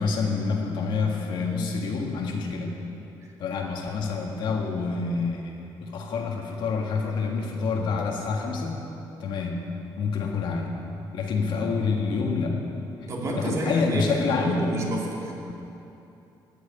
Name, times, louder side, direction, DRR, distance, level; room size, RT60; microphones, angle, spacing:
voice 1, 0.0-2.7 3.4-8.8 9.2-9.7 10.0-10.7 11.1-12.6 13.4-14.8, left 4 dB, 75° left, 1 dB, 1.8 m, -27 dB
voice 2, 13.1-15.3, right 1 dB, 40° right, -2 dB, 2.5 m, -30 dB
14.5 x 6.3 x 9.7 m, 2.9 s
cardioid pair, 135°, 8 cm